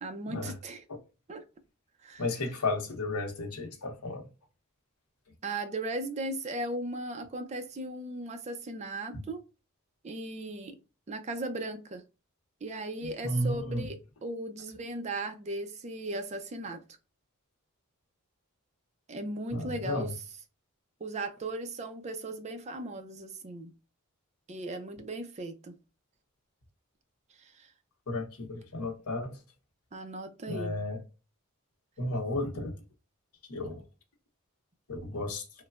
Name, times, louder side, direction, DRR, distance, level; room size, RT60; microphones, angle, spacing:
voice 1, 0.0-0.8 1.3-1.4 2.0-2.2 5.4-9.4 10.0-10.8 11.1-12.0 12.6-14.0 14.2-16.8 19.1-20.1 21.0-23.7 24.5-25.7 27.4-27.7 29.9-30.8, right 2 dB, 30° right, 0.4 m, -37 dB
voice 2, 2.2-4.2 9.1-9.2 13.0-13.9 19.5-20.1 28.1-29.4 30.5-31.0 32.0-32.7 33.5-33.8 34.9-35.5, left 2 dB, 85° left, 0.8 m, -33 dB
3.1 x 2.1 x 2.3 m
head